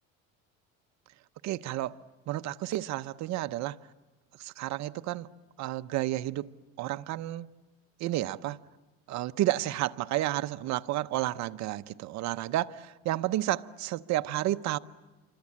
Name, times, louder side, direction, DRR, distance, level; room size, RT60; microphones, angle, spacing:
voice 1, 1.4-1.9 2.3-3.8 4.4-5.3 5.6-6.5 6.8-7.5 8.0-8.6 9.1-14.8, right 15 dB, 55° right, 0.8 m, -31 dB
27.5 x 24.5 x 8.6 m
cardioid pair, 115°, 32 cm